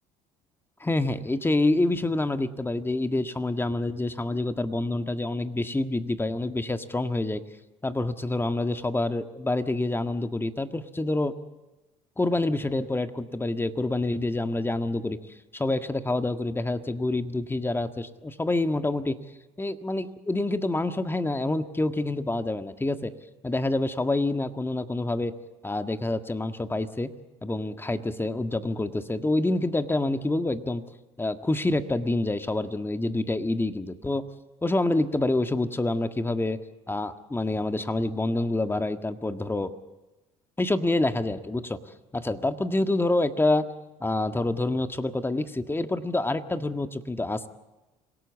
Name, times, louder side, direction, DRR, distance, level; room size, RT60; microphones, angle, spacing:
voice 1, 0.8-7.4 7.8-11.3 12.2-15.2 15.5-19.2 19.6-23.1 23.4-25.3 25.6-27.1 27.4-30.8 31.2-34.2 34.6-36.6 36.9-39.7 40.6-41.8 42.1-43.6 44.0-47.5, left 2 dB, 15° left, 8 dB, 1.7 m, -27 dB
27.0 x 17.5 x 8.4 m, 1.1 s
hypercardioid pair, 70°, 15 cm